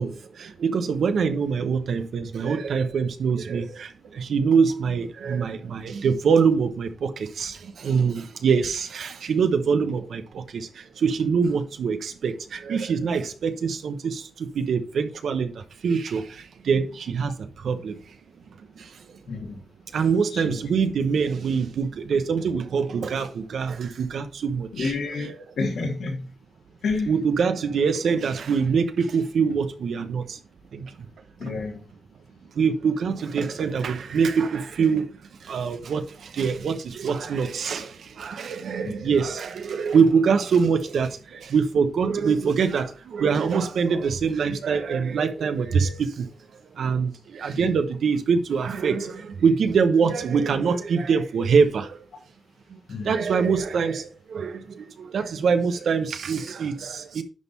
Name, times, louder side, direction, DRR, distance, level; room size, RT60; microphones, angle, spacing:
voice 1, 0.0-18.2 18.6-19.2 19.9-25.3 27.1-30.4 30.7-31.1 31.4-31.5 32.5-46.3 46.7-52.1 52.7-57.2, right 5 dB, 80° right, 1.0 m, -24 dB
voice 2, 19.3-19.6 20.3-20.6 24.7-25.3 25.6-26.3 26.8-27.1 31.4-31.9 38.8-38.9 47.6-47.7 52.9-53.2, left 3 dB, 80° left, 2.4 m, -29 dB
10.5 x 3.7 x 4.1 m
wide cardioid pair, 150°, 0 cm